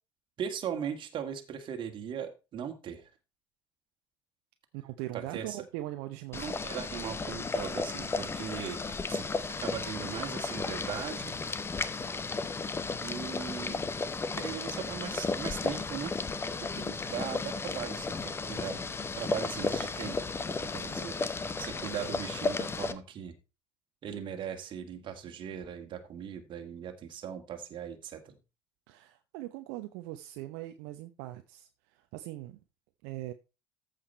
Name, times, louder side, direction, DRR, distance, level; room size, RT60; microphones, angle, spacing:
voice 1, 0.4-3.1 5.1-5.6 6.3-8.8 9.1-9.3 9.6-11.3 13.0-13.9 14.3-16.1 16.6-18.8 19.1-20.2 20.5-21.2 21.6-23.4 24.0-28.4, right 8 dB, 35° right, 1.9 m, -39 dB
voice 2, 4.7-6.5 28.9-32.6 33.0-33.3, right 16 dB, 55° right, 0.8 m, -41 dB
Boiling, 6.3-22.9, left 4 dB, 20° left, 0.9 m, -34 dB
14.0 x 5.1 x 4.3 m
figure-of-eight pair, 65°, 14 cm